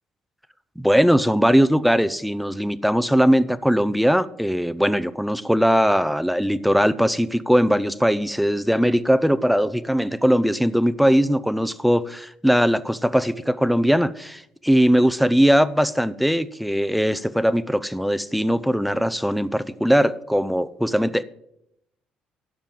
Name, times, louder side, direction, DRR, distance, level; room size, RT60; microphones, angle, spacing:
voice 1, 0.8-21.2, equal, ahead, 0.5 m, -20 dB
12.0 x 5.3 x 7.7 m
cardioid pair, 110°, 2 cm